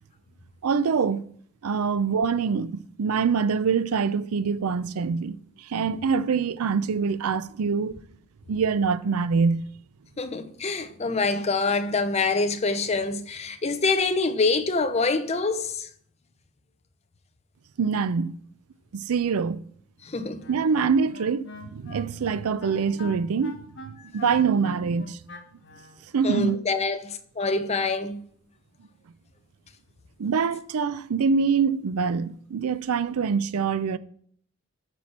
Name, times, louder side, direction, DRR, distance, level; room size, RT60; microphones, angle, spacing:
voice 1, 0.6-1.2 1.6-7.9 8.5-9.7 17.8-18.4 18.9-19.6 20.5-23.6 24.1-25.2 26.1-26.6 30.2-34.0, right 5 dB, 85° right, 0.4 m, -24 dB
voice 2, 10.2-15.9 20.0-20.4 26.2-28.2, left 3 dB, 30° left, 0.6 m, -25 dB
Wind instrument woodwind instrument, 20.4-26.0, left 1 dB, 55° left, 1.0 m, -43 dB
13.0 x 4.4 x 4.3 m
head